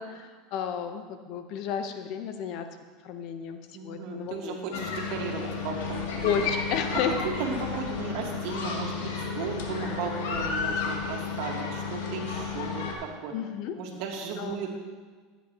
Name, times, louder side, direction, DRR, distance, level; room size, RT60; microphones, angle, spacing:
voice 1, 0.0-2.7 3.0-4.8 6.2-7.2 13.3-13.8 14.4-14.5, left 7 dB, 60° left, 7 dB, 1.0 m, -32 dB
voice 2, 3.7-6.5 6.9-13.3 13.8-14.8, right 5 dB, 65° right, 1 dB, 1.9 m, -35 dB
sound 1, 4.7-12.9, left 5 dB, 75° left, 1.7 m, -32 dB
15.0 x 8.3 x 3.1 m, 1.5 s
hypercardioid pair, 100°, 0 cm